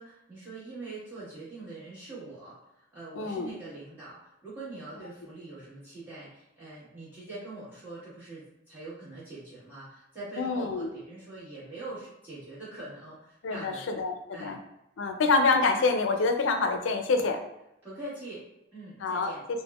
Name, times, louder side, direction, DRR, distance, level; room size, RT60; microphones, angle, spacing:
voice 1, 0.0-14.0 14.3-14.6 17.8-18.4 18.7-19.4, right 2 dB, 10° right, -11 dB, 1.3 m, -43 dB
voice 2, 3.2-3.5 10.4-10.9 13.4-14.1 14.4-14.6 15.0-17.4 19.0-19.3, left 3 dB, 75° left, 5 dB, 0.4 m, -26 dB
3.4 x 2.1 x 2.3 m, 0.85 s
head